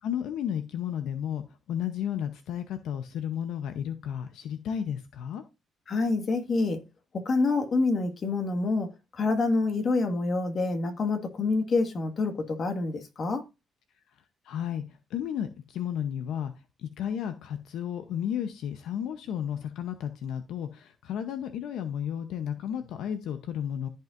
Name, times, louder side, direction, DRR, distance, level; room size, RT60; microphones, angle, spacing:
voice 1, 0.0-5.4 14.4-16.5 16.8-23.9, left 9 dB, 80° left, 0.8 m, -33 dB
voice 2, 5.9-6.8 7.1-13.5, left 3 dB, 50° left, 1.8 m, -27 dB
14.0 x 5.5 x 2.6 m
cardioid pair, 90°, 0 cm